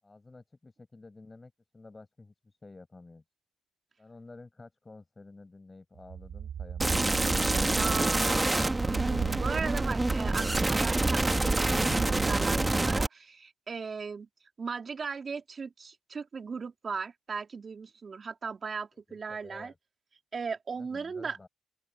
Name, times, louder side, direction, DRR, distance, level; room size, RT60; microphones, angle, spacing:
voice 1, 0.0-3.2 4.0-8.3 18.9-19.8 20.8-21.5, left 3 dB, 20° left, 6.8 m, -52 dB
sound 1, 6.0-12.8, right 8 dB, 65° right, 4.2 m, -39 dB
sound 2, 6.8-13.1, right 2 dB, 15° right, 1.6 m, -27 dB
voice 2, 7.6-14.3 14.6-19.7 20.3-21.4, right 5 dB, 40° right, 3.7 m, -37 dB
open air
cardioid pair, 90°, 0 cm